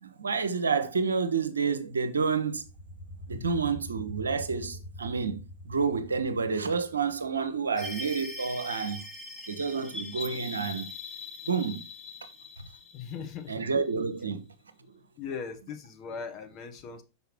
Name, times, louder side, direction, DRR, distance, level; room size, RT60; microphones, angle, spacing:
voice 1, 0.0-2.6 3.3-9.0 9.5-10.9 11.5-11.8 13.5-14.5, right 5 dB, 75° right, 0.7 m, -29 dB
sound 1, 2.6-7.7, left 1 dB, 80° left, 2.3 m, -45 dB
sound 2, 7.8-14.0, left 3 dB, 10° left, 1.3 m, -42 dB
voice 2, 12.9-13.6 15.2-17.0, left 6 dB, 40° left, 0.9 m, -39 dB
5.8 x 5.3 x 3.1 m
figure-of-eight pair, 90°, 0 cm